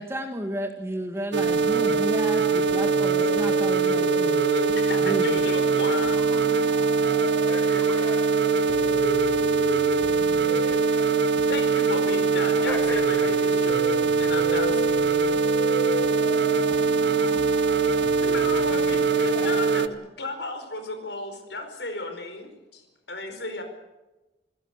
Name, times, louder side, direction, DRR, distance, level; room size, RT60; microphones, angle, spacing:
voice 1, 0.0-4.5 5.0-5.4, equal, 15° right, 5 dB, 1.9 m, -32 dB
sound 1, 1.3-19.9, right 5 dB, 75° right, 1.2 m, -22 dB
sound 2, 1.4-20.0, left 2 dB, 30° left, 0.9 m, -36 dB
voice 2, 4.5-6.2 6.4-6.5 11.5-15.3 16.3-16.4 17.2-17.3 17.8-17.9 18.2-22.8 23.1-23.6, left 2 dB, 75° left, 7 dB, 4.9 m, -34 dB
voice 3, 6.1-8.8 10.4-11.1 12.6-13.5 17.6-17.7 18.5-18.7 19.3-19.8, equal, 10° left, 3 dB, 6.5 m, -40 dB
28.0 x 16.5 x 8.3 m, 1.0 s
head